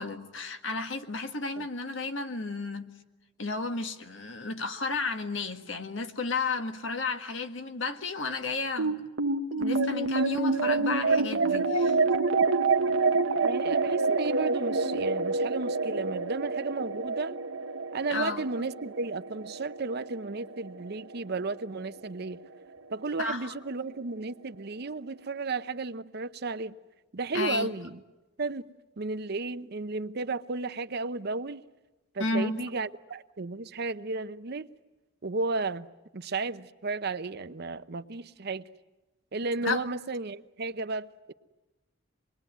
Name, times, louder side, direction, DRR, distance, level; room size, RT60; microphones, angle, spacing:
voice 1, 0.0-2.9 3.4-9.0 9.6-12.0 18.1-18.4 23.2-23.5 27.3-27.7 32.2-32.6 39.6-39.8, left 3 dB, 70° left, 1.7 m, -32 dB
sound 1, 8.8-21.4, right 3 dB, 85° right, 1.1 m, -27 dB
voice 2, 13.4-17.4 17.9-22.4 22.9-26.8 27.1-28.0 28.4-28.7 29.0-31.6 32.1-34.7 35.2-35.9 36.1-38.6 39.3-41.3, right 3 dB, 55° right, 0.8 m, -33 dB
26.5 x 21.5 x 9.2 m
head